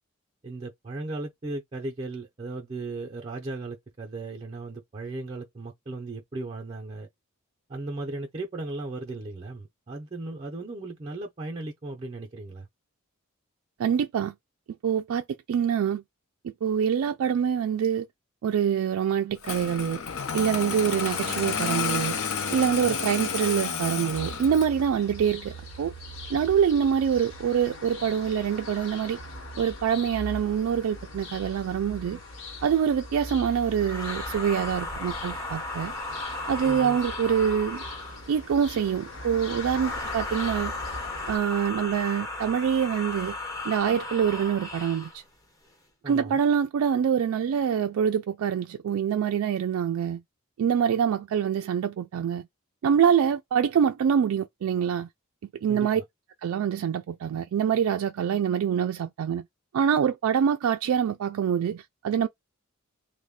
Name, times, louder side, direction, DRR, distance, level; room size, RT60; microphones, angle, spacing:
voice 1, 0.4-7.1 7.7-12.7 22.9-23.0 36.6-37.0 46.0-46.4 55.7-56.0, right 2 dB, 30° right, 0.5 m, -36 dB
voice 2, 13.8-14.3 14.8-16.0 16.4-18.0 18.4-20.0 20.3-22.2 22.5-25.9 26.3-29.2 29.6-32.2 32.6-35.9 36.5-37.8 38.3-40.7 41.3-43.4 43.6-45.2 46.1-50.2 50.6-52.5 52.8-55.1 55.6-56.0 56.4-59.4 59.7-62.3, right 8 dB, 80° right, 0.3 m, -25 dB
Engine starting, 19.4-24.8, left 6 dB, 80° left, 0.5 m, -30 dB
sound 1, 24.2-41.4, left 1 dB, 60° left, 0.9 m, -40 dB
sound 2, 33.8-38.4 39.7-45.2, left 2 dB, 15° left, 0.5 m, -35 dB
3.1 x 2.1 x 3.6 m
head